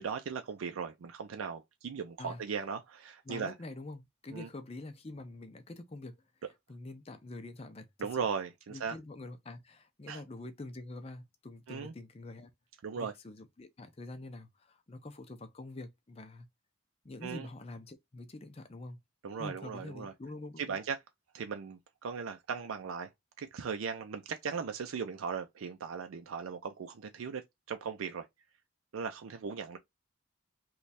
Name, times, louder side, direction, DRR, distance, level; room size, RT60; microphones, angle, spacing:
voice 1, 0.0-3.5 4.3-4.5 8.0-9.0 10.1-10.2 11.7-11.9 12.8-13.1 17.2-17.5 19.2-20.1 20.6-21.0 21.3-23.1 23.4-27.4 27.7-28.3 28.9-29.8, right 6 dB, 85° right, 0.4 m, -38 dB
voice 2, 3.3-6.1 6.7-8.2 8.7-12.5 13.0-16.5 17.0-19.0 19.4-20.8, left 2 dB, 30° left, 0.5 m, -46 dB
3.1 x 2.3 x 4.0 m
head